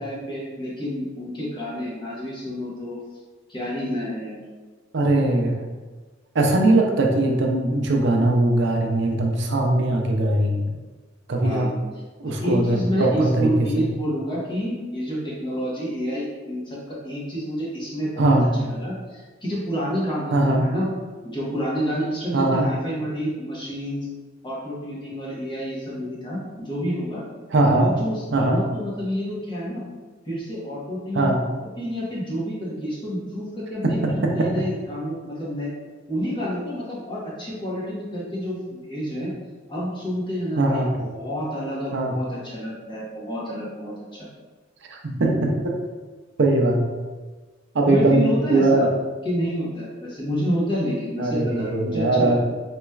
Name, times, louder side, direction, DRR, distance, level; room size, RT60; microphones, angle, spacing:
voice 1, 0.0-3.0 3.5-4.4 11.4-11.7 12.2-18.3 18.6-20.9 21.2-24.1 24.4-27.2 27.8-29.8 30.2-31.3 31.6-35.7 36.1-39.3 39.7-44.3 47.8-48.8 49.2-52.5, equal, 25° left, -7 dB, 1.2 m, -29 dB
voice 2, 4.9-5.6 6.3-10.7 11.3-11.7 12.2-13.8 18.2-18.5 20.3-20.7 22.3-22.7 27.5-27.9 28.3-28.6 31.1-31.4 33.8-34.5 40.6-40.9 41.9-42.1 44.9-45.8 46.4-46.8 47.7-48.9 51.2-52.4, right 2 dB, 65° right, 1 dB, 0.6 m, -20 dB
4.2 x 3.0 x 2.4 m, 1.3 s
head